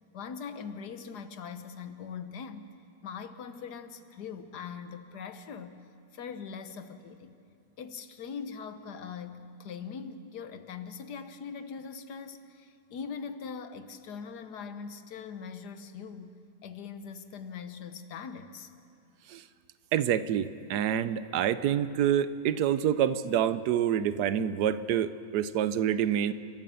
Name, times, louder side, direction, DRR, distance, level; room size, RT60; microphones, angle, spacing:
voice 1, 0.1-2.6 3.0-5.8 6.1-7.4 7.8-16.4 16.6-18.7, left 6 dB, 85° left, 9 dB, 1.6 m, -41 dB
voice 2, 19.9-26.3, right 10 dB, 85° right, 14 dB, 1.3 m, -27 dB
30.0 x 12.5 x 6.9 m, 2.5 s
omnidirectional pair, 1.7 m